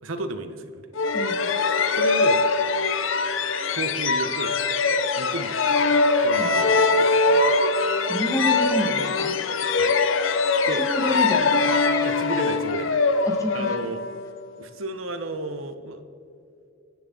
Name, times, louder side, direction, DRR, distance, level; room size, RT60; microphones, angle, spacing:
voice 1, 0.0-0.9 1.9-2.4 3.7-4.6 5.1-5.6 6.2-7.6 9.7-10.0 10.7-10.8 12.0-13.0 13.5-14.0 14.6-16.0, right 2 dB, 75° right, 8 dB, 1.0 m, -33 dB
sound 1, 0.9-14.4, left 3 dB, 70° left, 0.8 m, -22 dB
voice 2, 8.1-9.3 10.8-11.9 13.2-13.8, left 1 dB, 15° left, 2 dB, 1.7 m, -28 dB
24.5 x 10.5 x 4.0 m, 2.5 s
head